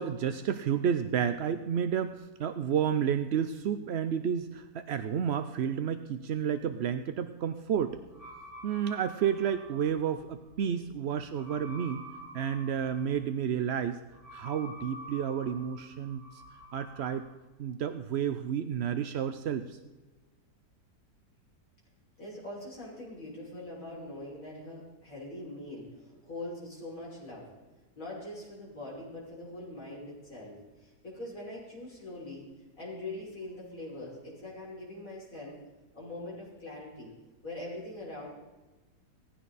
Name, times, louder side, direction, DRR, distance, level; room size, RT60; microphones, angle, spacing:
voice 1, 0.0-8.0 8.6-12.0 12.3-14.0 14.3-16.2 16.7-17.2 17.6-19.8, right 8 dB, 60° right, 10 dB, 0.6 m, -31 dB
sound 1, 7.9-17.2, equal, 20° right, 6.5 m, -49 dB
voice 2, 22.2-27.5 28.0-32.4 32.8-35.6 35.9-37.1 37.4-38.3, left 1 dB, 55° left, -6 dB, 6.6 m, -42 dB
18.0 x 15.5 x 4.1 m, 1.2 s
omnidirectional pair, 1.8 m